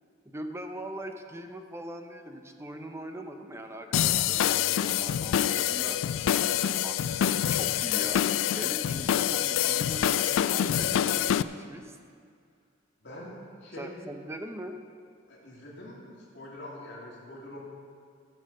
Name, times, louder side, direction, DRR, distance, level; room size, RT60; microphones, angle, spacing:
voice 1, 0.3-6.0 6.8-12.0 13.7-14.7, right 1 dB, 15° right, 5 dB, 0.7 m, -41 dB
sound 1, 3.9-11.4, left 10 dB, 90° left, 0.3 m, -26 dB
voice 2, 13.6-13.9 15.3-17.6, left 1 dB, 65° left, -5 dB, 2.6 m, -44 dB
14.5 x 5.6 x 6.6 m, 2.2 s
head